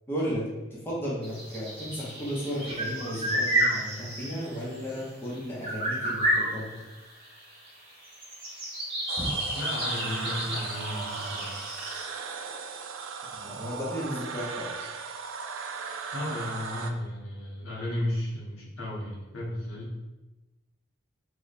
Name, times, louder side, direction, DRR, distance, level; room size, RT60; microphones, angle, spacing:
voice 1, 0.1-6.8 9.2-9.3 13.3-14.9, equal, 10° left, -7 dB, 0.7 m, -34 dB
sound 1, 1.2-5.4 5.6-12.0, right 1 dB, 25° right, 1.1 m, -31 dB
sound 2, 9.1-16.9, right 5 dB, 65° right, 0.3 m, -38 dB
voice 2, 9.6-11.6 16.1-19.9, left 1 dB, 75° left, -5 dB, 1.0 m, -34 dB
3.2 x 2.2 x 4.0 m, 1.1 s
head